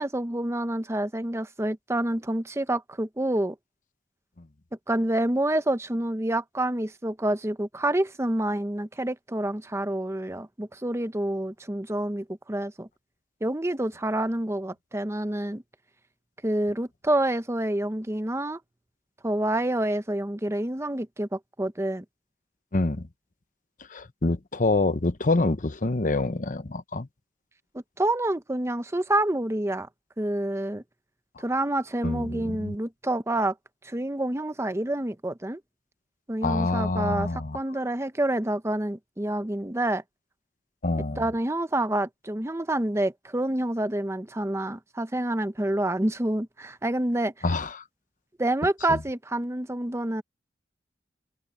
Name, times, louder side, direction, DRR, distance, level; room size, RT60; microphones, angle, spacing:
voice 1, 0.0-3.5 4.9-12.9 13.4-15.6 16.4-18.6 19.2-22.0 28.0-29.9 30.2-30.8 31.4-33.5 33.8-35.6 36.3-40.0 41.2-47.3 48.4-50.2, right 1 dB, 15° right, 0.8 m, -28 dB
voice 2, 22.7-23.1 23.9-27.1 32.0-32.8 36.4-37.6 40.8-41.2 47.4-47.7 48.9-49.0, left 2 dB, 45° left, 0.9 m, -26 dB
open air
head